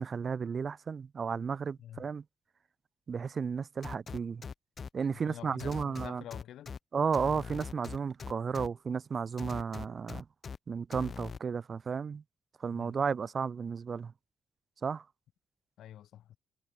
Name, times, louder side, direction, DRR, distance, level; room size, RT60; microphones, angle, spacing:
voice 1, 0.0-2.2 3.1-4.4 4.9-6.2 6.9-10.3 10.7-12.2 12.6-14.1 14.8-15.0, right 6 dB, 35° right, 0.6 m, -33 dB
voice 2, 1.8-2.1 5.1-6.7 12.7-13.0 15.8-16.4, left 11 dB, 80° left, 2.4 m, -48 dB
sound 1, 3.8-4.9 5.6-6.8 7.1-8.7 9.4-10.6 10.9-11.4, left 6 dB, 35° left, 2.7 m, -41 dB
cardioid pair, 165°, 0 cm